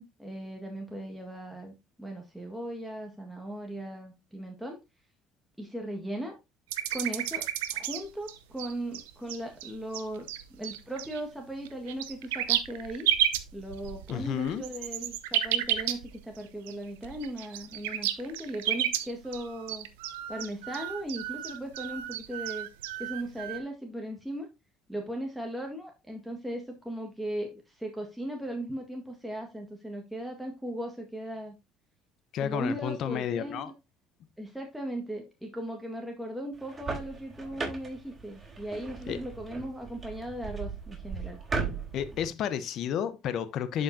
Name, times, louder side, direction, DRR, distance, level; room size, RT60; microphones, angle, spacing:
voice 1, 0.0-4.8 5.6-6.3 6.9-13.1 13.5-19.9 20.3-22.7 23.0-24.5 24.9-31.6 32.4-33.7 34.4-41.4, right 1 dB, 5° right, 1.7 m, -38 dB
sound 1, 6.7-8.0 8.3-11.2 11.6-16.4 16.7-16.8 17.0-23.6, right 12 dB, 80° right, 0.7 m, -32 dB
voice 2, 14.1-14.6 32.3-33.7 39.1-39.2 41.9-43.8, left 9 dB, 60° left, 0.9 m, -31 dB
sound 2, 36.5-42.3, right 4 dB, 25° right, 3.9 m, -37 dB
11.5 x 5.2 x 2.7 m
hypercardioid pair, 65°, 0 cm